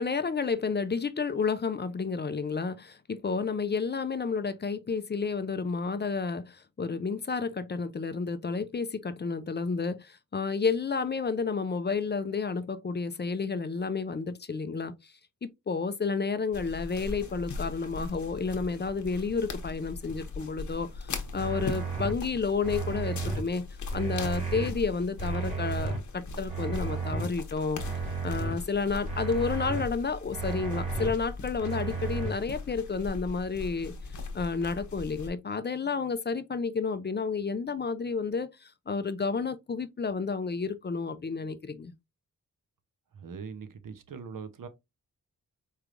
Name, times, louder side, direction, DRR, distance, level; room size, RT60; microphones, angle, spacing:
voice 1, 0.0-15.1 15.4-23.6 23.9-27.8 28.2-33.9 34.3-41.9, left 4 dB, 35° left, 0.5 m, -31 dB
sound 1, 16.5-35.3, left 3 dB, 65° left, 0.9 m, -39 dB
sound 2, 21.3-22.1 22.6-23.4 23.9-24.7 25.2-26.0 26.5-27.3 27.7-28.5 29.0-29.8 30.3-31.1 31.6-32.3, right 5 dB, 20° right, 1.9 m, -33 dB
voice 2, 43.1-44.7, right 5 dB, 80° right, 0.8 m, -41 dB
4.6 x 3.3 x 2.5 m
wide cardioid pair, 105°, 32 cm